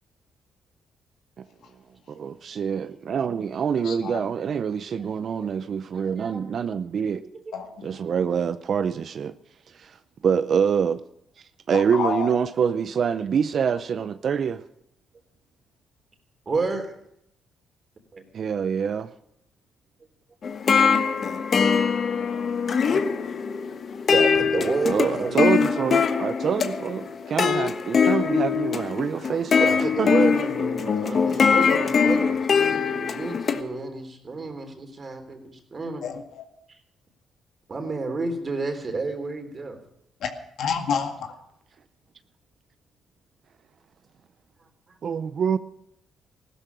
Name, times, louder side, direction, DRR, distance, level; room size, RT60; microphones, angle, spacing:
voice 1, 2.1-7.2 7.8-9.3 9.7-10.0 10.2-11.0 11.7-14.6 18.3-19.1 24.9-27.0 27.3-29.6 30.0-30.1 45.0-45.6, right 7 dB, 55° right, 0.6 m, -25 dB
voice 2, 3.8-4.2 7.5-7.9 11.7-12.3 27.2-27.3 36.0-36.5 40.2-40.3 40.6-41.3, left 6 dB, 75° left, 2.0 m, -29 dB
voice 3, 5.9-6.5 7.0-7.5 16.5-16.9 18.1-18.2 24.1-25.4 29.6-35.4 35.7-36.1 37.7-39.8, right 3 dB, 35° right, 3.4 m, -30 dB
sound 1, 20.4-33.6, left 6 dB, 50° left, 1.3 m, -22 dB
16.0 x 12.5 x 6.2 m
cardioid pair, 90°, 0 cm